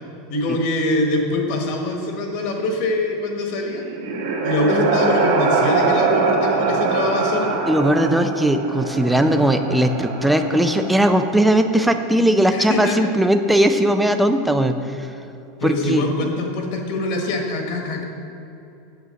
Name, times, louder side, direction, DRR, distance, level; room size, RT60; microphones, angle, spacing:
voice 1, 0.3-3.8 4.4-7.5 12.5-13.1 15.6-18.0, left 2 dB, 50° left, 2 dB, 1.3 m, -23 dB
sound 1, 3.6-11.5, right 4 dB, 75° right, 1.7 m, -23 dB
voice 2, 7.7-15.1 15.6-16.0, right 1 dB, 5° right, 7 dB, 0.4 m, -18 dB
8.1 x 6.2 x 7.6 m, 2.8 s
supercardioid pair, 175°, 0 cm